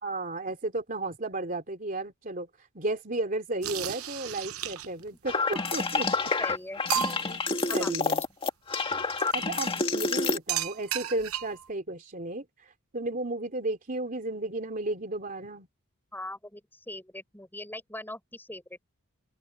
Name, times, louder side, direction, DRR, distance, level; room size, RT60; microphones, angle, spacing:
voice 1, 0.0-2.5 2.7-6.1 6.9-7.4 7.7-8.2 9.3-15.7, right 2 dB, 40° right, 3.2 m, -34 dB
sound 1, 3.6-5.1 6.0-6.1 6.4-6.5 6.9-7.5 9.2-9.5 10.5-11.7, right 10 dB, 85° right, 0.9 m, -33 dB
sound 2, 5.3-10.4, left 3 dB, 25° left, 2.2 m, -28 dB
voice 2, 6.4-6.8 7.8-7.9 16.1-18.8, left 1 dB, 10° left, 7.4 m, -41 dB
open air
head